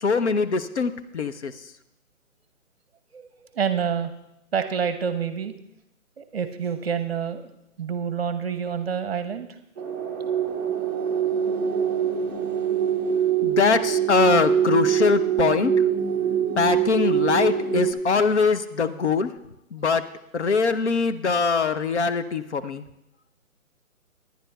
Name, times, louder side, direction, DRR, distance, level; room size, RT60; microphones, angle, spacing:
voice 1, 0.0-1.5 13.4-15.7 16.6-19.3 19.7-20.1 20.3-22.8, left 5 dB, 55° left, 10 dB, 0.6 m, -22 dB
voice 2, 3.1-4.1 4.5-5.5 6.2-7.4 7.8-9.5, right 7 dB, 45° right, 9 dB, 0.8 m, -27 dB
sound 1, 9.8-17.9, right 8 dB, 15° right, 0.6 m, -24 dB
19.5 x 10.5 x 2.3 m, 0.84 s
figure-of-eight pair, 155°, 43 cm